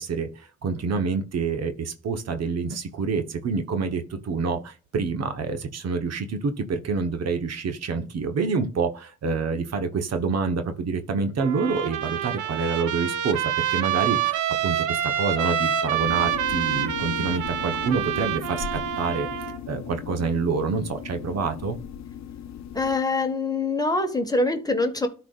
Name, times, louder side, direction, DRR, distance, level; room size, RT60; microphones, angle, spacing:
voice 1, 0.0-19.3 19.7-21.8, right 5 dB, 55° right, 1.2 m, -27 dB
Trumpet, 11.4-19.6, right 10 dB, 80° right, 1.0 m, -27 dB
sound 1, 16.0-23.0, left 10 dB, 65° left, 0.7 m, -37 dB
voice 2, 22.7-25.1, left 2 dB, 10° left, 1.6 m, -24 dB
12.5 x 4.8 x 2.5 m
cardioid pair, 90°, 30 cm